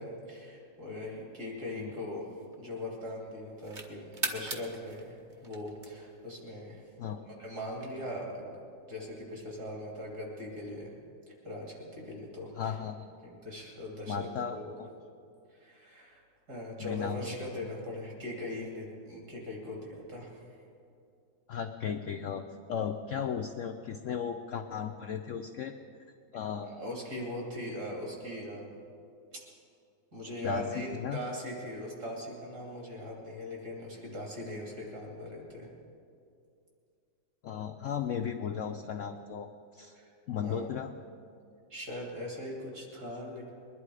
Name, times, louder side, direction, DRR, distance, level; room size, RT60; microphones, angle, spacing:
voice 1, 0.0-2.3 2.6-6.9 7.3-8.5 8.9-10.9 11.3-12.7 13.2-14.8 15.5-16.2 16.5-20.5 26.6-28.8 29.3-29.4 30.1-35.7 39.9-40.1 40.4-40.7 41.7-43.5, left 1 dB, 55° right, -2 dB, 3.4 m, -40 dB
sound 1, 1.1-2.9 3.3-6.3, right 3 dB, 30° right, 1.0 m, -40 dB
voice 2, 12.6-13.1 14.1-14.9 16.8-17.4 21.5-22.4 22.7-25.7 26.3-26.7 30.4-31.2 37.4-40.0 40.3-40.9, left 7 dB, 80° left, 6 dB, 0.7 m, -35 dB
21.5 x 11.0 x 4.9 m, 2.4 s
omnidirectional pair, 2.0 m